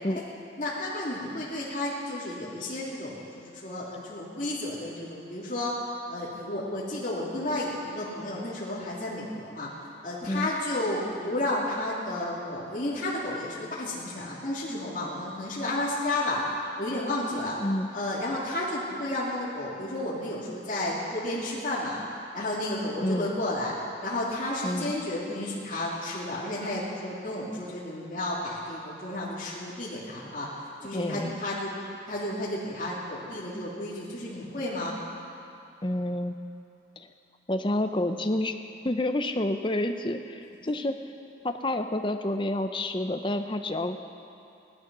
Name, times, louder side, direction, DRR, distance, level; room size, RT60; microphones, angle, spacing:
voice 1, 0.6-5.8 6.1-9.7 10.0-16.4 16.8-17.5 17.9-22.0 22.3-23.7 24.0-30.5 30.8-31.7 32.1-34.9, left 1 dB, 45° left, -8 dB, 2.8 m, -32 dB
voice 2, 23.0-23.3 24.6-24.9 30.9-31.4 35.8-36.4 37.0-37.1 37.5-38.5 38.8-41.0 41.4-44.0, left 1 dB, 25° left, 7 dB, 0.7 m, -29 dB
17.5 x 12.5 x 6.2 m, 2.7 s
head